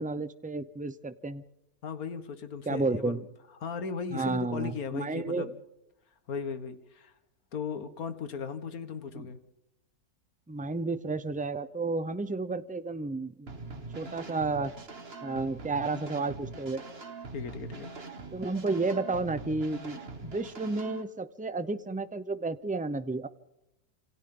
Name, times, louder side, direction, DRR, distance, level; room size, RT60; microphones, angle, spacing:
voice 1, 0.0-1.4 2.7-3.2 4.1-5.5 9.2-9.3 10.5-14.7 15.2-16.8 18.3-23.3, right 3 dB, 10° right, 12 dB, 0.4 m, -32 dB
voice 2, 1.8-3.3 3.6-5.5 6.3-7.1 7.5-9.4 17.3-17.9, left 5 dB, 65° left, 10 dB, 1.9 m, -37 dB
sound 1, 13.5-21.0, right 3 dB, 40° right, 1.9 m, -43 dB
28.0 x 27.5 x 3.9 m, 0.89 s
omnidirectional pair, 1.7 m